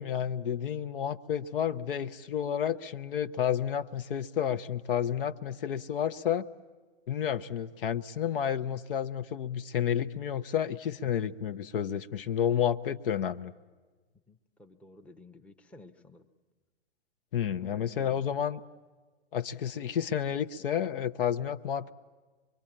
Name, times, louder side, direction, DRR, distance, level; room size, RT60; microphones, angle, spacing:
voice 1, 0.0-6.5 7.1-13.5 17.3-18.6 19.3-21.9, left 9 dB, 55° left, 12 dB, 0.8 m, -31 dB
voice 2, 14.3-16.3 17.6-18.4, left 2 dB, 5° left, 5 dB, 0.8 m, -54 dB
24.5 x 23.0 x 8.8 m, 1.3 s
figure-of-eight pair, 115°, 33 cm